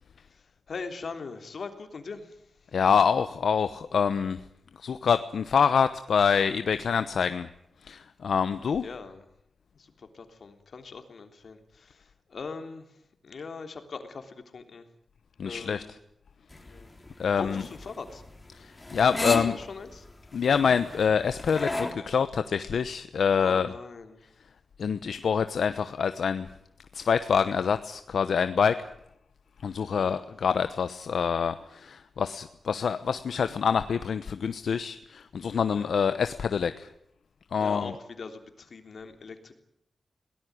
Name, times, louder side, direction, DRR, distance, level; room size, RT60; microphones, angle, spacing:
voice 1, 0.3-2.4 8.8-9.2 9.7-12.9 13.2-14.8 15.4-15.9 16.6-16.9 17.3-18.2 19.3-20.0 23.4-24.2 29.9-30.2 35.7-36.0 37.6-39.5, left 4 dB, 65° left, 7 dB, 3.4 m, -41 dB
voice 2, 2.7-4.4 4.8-7.5 7.8-8.8 15.4-15.8 17.2-17.6 18.6-19.6 20.3-23.7 24.8-26.5 26.9-28.9 29.6-36.9 37.5-37.9, left 6 dB, 80° left, 11 dB, 1.0 m, -26 dB
sound 1, 16.5-21.9, left 2 dB, 20° left, 3.7 m, -34 dB
22.0 x 18.5 x 9.6 m, 0.77 s
wide cardioid pair, 95°, 0 cm